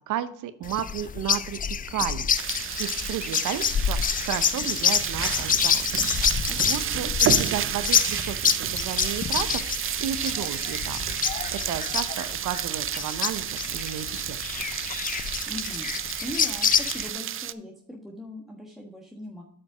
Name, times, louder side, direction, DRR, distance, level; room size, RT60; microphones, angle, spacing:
voice 1, 0.1-2.3 2.8-5.9 6.4-11.1 11.5-14.4, right 10 dB, 85° right, 13 dB, 0.8 m, -33 dB
sound 1, 0.6-17.1, left 7 dB, 30° left, 0.4 m, -27 dB
sound 2, 2.3-17.5, right 10 dB, 45° right, 0.5 m, -31 dB
voice 2, 6.5-7.1 15.5-19.4, left 1 dB, ahead, -1 dB, 1.3 m, -40 dB
8.5 x 5.2 x 4.8 m, 0.67 s
cardioid pair, 90°, 30 cm